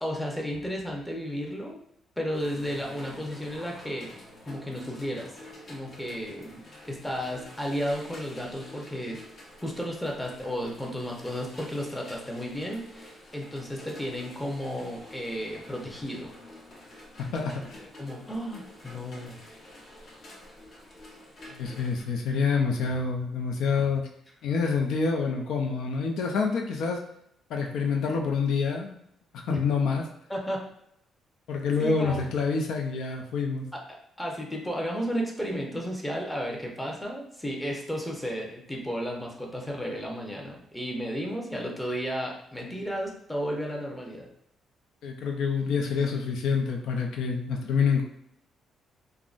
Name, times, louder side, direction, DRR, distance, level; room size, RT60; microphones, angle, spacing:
voice 1, 0.0-1.8 2.2-4.1 4.5-5.3 5.7-9.2 9.6-16.3 17.2-17.7 18.0-19.4 29.5-29.6 30.3-30.6 31.8-32.3 33.7-33.8 34.2-44.3, equal, 10° left, -1 dB, 0.7 m, -33 dB
sound 1, 2.3-22.0, left 1 dB, 50° left, 1.0 m, -48 dB
voice 2, 17.3-17.8 21.5-24.1 24.4-27.0 27.5-29.0 29.5-30.0 31.5-33.7 45.0-48.0, left 5 dB, 80° left, 2 dB, 0.5 m, -27 dB
3.6 x 2.1 x 2.5 m, 0.78 s
cardioid pair, 90°, 0 cm